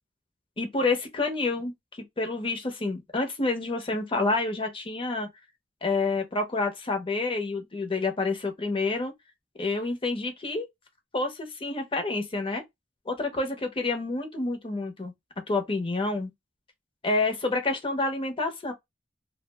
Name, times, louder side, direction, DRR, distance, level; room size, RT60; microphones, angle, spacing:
voice 1, 0.6-1.7 2.2-5.3 5.8-9.1 9.6-10.7 11.1-12.6 13.1-15.1 15.5-16.3 17.0-18.7, left 3 dB, 30° left, 0.6 m, -28 dB
2.4 x 2.0 x 3.2 m
head